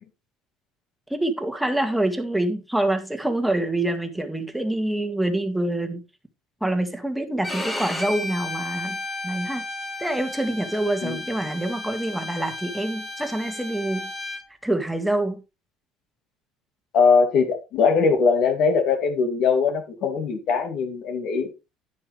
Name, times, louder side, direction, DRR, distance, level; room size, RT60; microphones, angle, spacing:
voice 1, 1.1-6.0 6.6-9.7 10.0-14.1 14.6-15.4, right 1 dB, 5° right, 1.9 m, -26 dB
Bowed string instrument, 7.4-14.4, left 2 dB, 15° left, 3.2 m, -33 dB
voice 2, 16.9-21.5, left 5 dB, 55° left, 2.6 m, -21 dB
10.5 x 9.9 x 3.3 m
cardioid pair, 120°, 0 cm